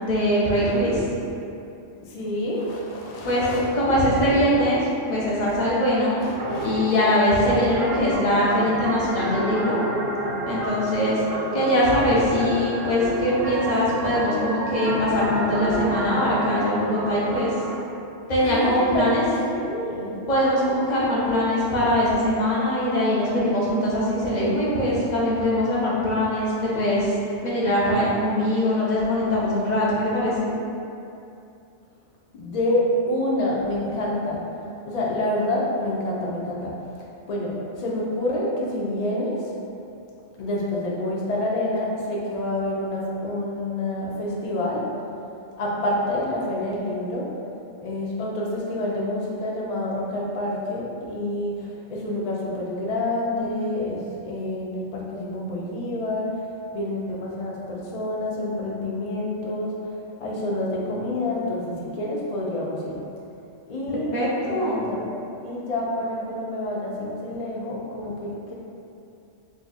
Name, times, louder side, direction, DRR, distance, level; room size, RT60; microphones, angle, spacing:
voice 1, 0.0-1.0 3.2-4.8 5.1-6.2 6.6-9.8 10.5-11.2 11.5-17.5 18.3-19.2 20.3-27.1 27.4-30.5 64.1-64.8, left 1 dB, 40° left, -7 dB, 0.7 m, -22 dB
voice 2, 2.0-4.0 5.5-5.7 6.2-6.9 18.4-20.1 32.4-34.4 34.9-36.7 37.3-39.5 40.4-44.8 45.6-47.3 47.8-56.4 56.7-59.9 60.2-63.0 63.7-65.0 65.4-68.5, left 1 dB, 85° left, -4 dB, 0.3 m, -28 dB
sound 1, 6.4-17.7, right 1 dB, 85° right, 1.0 m, -30 dB
2.8 x 2.3 x 4.0 m, 2.7 s
omnidirectional pair, 1.3 m